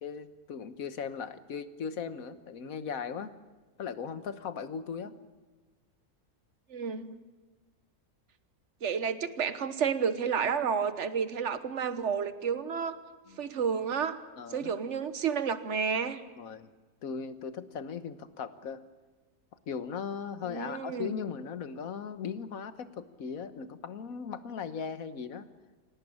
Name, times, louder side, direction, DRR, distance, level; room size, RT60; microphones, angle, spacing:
voice 1, 0.0-3.3 3.8-5.1 13.3-13.4 14.4-14.8 16.4-16.7 17.0-18.8 19.7-25.5, left 6 dB, 65° left, 11 dB, 1.6 m, -38 dB
voice 2, 6.7-7.1 8.8-13.0 13.4-14.2 14.5-16.2 20.5-21.2, right 6 dB, 50° right, 11 dB, 1.5 m, -31 dB
25.5 x 18.0 x 8.8 m, 1.3 s
omnidirectional pair, 1.6 m